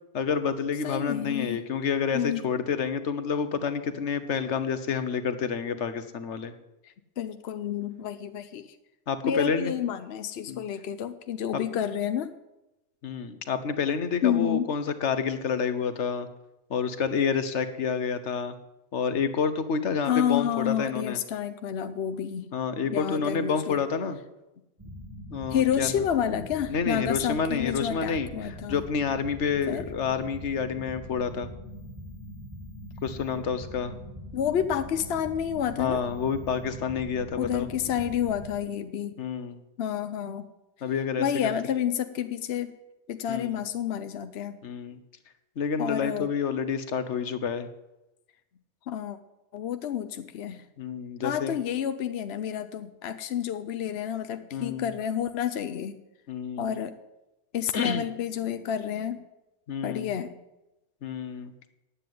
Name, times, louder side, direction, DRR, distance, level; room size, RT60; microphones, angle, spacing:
voice 1, 0.1-6.5 9.1-9.7 10.5-10.6 13.0-16.3 16.7-18.5 18.9-21.2 22.5-24.2 25.3-25.9 26.7-31.5 33.0-33.9 35.8-37.7 39.2-39.6 40.8-41.5 43.3-43.6 44.6-45.0 45.6-47.7 50.8-51.5 54.5-54.9 56.3-56.7 57.7-58.0 59.7-60.1 61.0-61.7, left 6 dB, 80° left, 11 dB, 1.3 m, -29 dB
voice 2, 0.8-1.6 2.1-2.4 6.8-8.7 9.2-12.3 14.2-14.7 20.0-22.5 22.9-23.8 25.5-28.8 29.7-29.9 34.3-36.0 37.4-39.1 39.8-40.4 41.2-42.7 43.1-44.6 45.8-46.3 48.9-49.2 49.5-50.7 51.2-56.0 56.6-57.0 57.5-59.2 59.8-60.4, left 9 dB, 65° left, 10 dB, 0.9 m, -29 dB
space ship atmos, 24.8-38.5, equal, 15° right, 4.6 m, -42 dB
9.5 x 8.4 x 9.3 m, 0.95 s
omnidirectional pair, 1.2 m